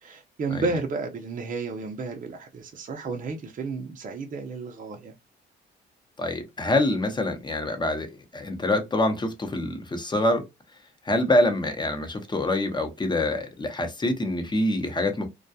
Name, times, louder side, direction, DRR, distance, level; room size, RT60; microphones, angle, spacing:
voice 1, 0.0-5.1, right 4 dB, 40° right, 0.6 m, -32 dB
voice 2, 6.2-10.4 11.1-15.3, left 1 dB, 20° left, 0.7 m, -25 dB
2.3 x 2.2 x 2.6 m
cardioid pair, 90°, 20 cm